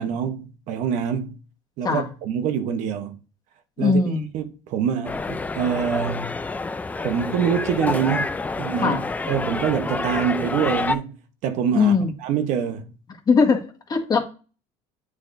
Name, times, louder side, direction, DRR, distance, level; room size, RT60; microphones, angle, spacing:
voice 1, 0.0-1.4 1.8-3.2 3.8-4.0 4.3-6.4 7.0-9.0 9.3-11.2 11.4-11.9 12.2-12.9, right 8 dB, 65° right, 1.0 m, -25 dB
voice 2, 3.8-4.3 8.8-9.0 11.7-12.1 13.3-14.2, left 5 dB, 30° left, 1.4 m, -20 dB
sound 1, 5.0-11.0, left 3 dB, 10° left, 0.4 m, -28 dB
8.5 x 4.7 x 2.6 m
cardioid pair, 130°, 14 cm